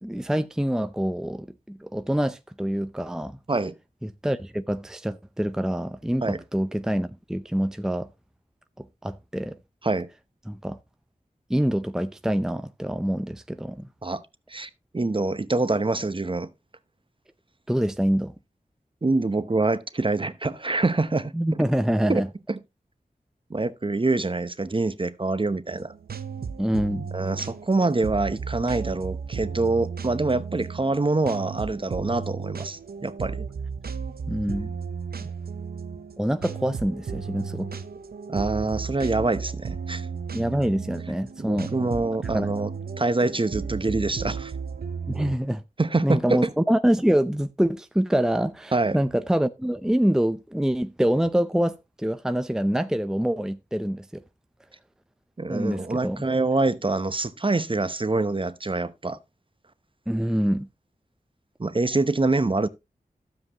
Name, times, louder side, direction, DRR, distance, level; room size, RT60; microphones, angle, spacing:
voice 1, 0.0-3.4 4.0-8.1 8.8-9.6 10.5-10.8 11.5-13.9 17.7-18.3 21.3-22.3 26.6-27.1 34.3-34.7 36.2-37.7 40.3-41.9 42.3-42.5 45.1-45.6 46.0-54.2 55.5-56.3 60.1-60.7, equal, 5° right, 0.6 m, -25 dB
voice 2, 14.5-16.5 19.0-21.3 22.1-22.2 22.5-22.6 23.5-25.9 27.1-33.4 38.3-40.0 41.4-42.7 43.0-44.5 45.8-46.4 48.7-49.0 55.4-59.2 61.6-62.7, right 3 dB, 35° right, 0.8 m, -25 dB
sound 1, 25.7-45.4, right 6 dB, 85° right, 0.8 m, -34 dB
12.5 x 7.6 x 3.0 m
wide cardioid pair, 50°, 15 cm